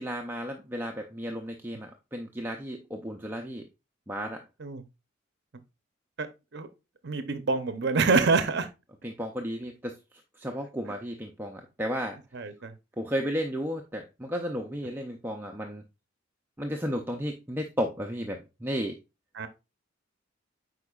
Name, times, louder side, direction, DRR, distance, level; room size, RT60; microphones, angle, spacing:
voice 1, 0.0-3.6 4.1-4.4 9.0-10.0 10.4-12.2 13.0-15.8 16.6-19.0, equal, 10° right, 0.5 m, -33 dB
voice 2, 7.0-8.7 12.3-12.7 19.4-19.5, right 4 dB, 55° right, 0.6 m, -26 dB
8.2 x 4.9 x 2.3 m
head